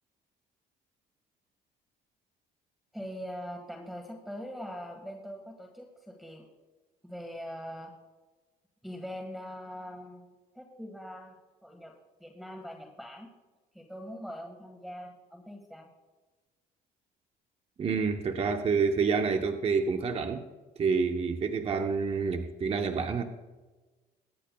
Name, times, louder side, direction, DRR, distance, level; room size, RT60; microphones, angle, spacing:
voice 1, 2.9-6.4 7.0-7.9 8.8-10.3 10.5-11.3 11.6-11.9 12.2-13.3 13.7-15.9, equal, ahead, 0 dB, 1.6 m, -42 dB
voice 2, 17.8-20.4 20.8-23.2, right 5 dB, 35° right, 5 dB, 0.9 m, -28 dB
22.5 x 9.9 x 2.3 m, 1.2 s
cardioid pair, 110°, 17 cm